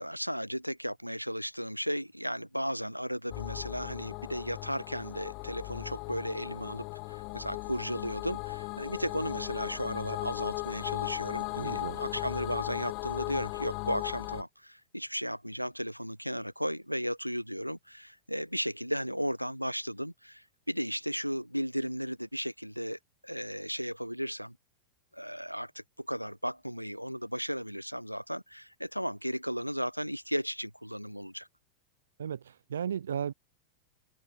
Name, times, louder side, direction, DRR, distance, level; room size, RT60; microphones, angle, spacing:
voice 1, 0.0-24.6 25.1-31.5, equal, 90° right, 3.7 m, -35 dB
sound 1, 3.3-14.4, left 32 dB, 45° left, 5.6 m, -37 dB
voice 2, 11.6-12.0 32.2-33.3, right 8 dB, 65° right, 1.3 m, -35 dB
open air
figure-of-eight pair, 90°, 0 cm